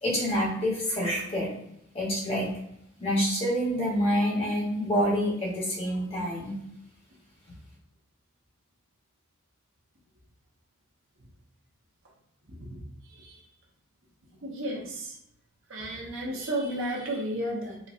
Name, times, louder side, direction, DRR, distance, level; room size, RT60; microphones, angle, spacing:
voice 1, 0.0-1.5 1.9-2.5 3.0-6.5, equal, 30° left, -4 dB, 1.0 m, -27 dB
voice 2, 12.5-12.8 13.1-13.4 14.4-15.2 15.7-17.8, right 1 dB, 65° right, -2 dB, 0.9 m, -33 dB
4.0 x 2.2 x 2.4 m, 0.77 s
head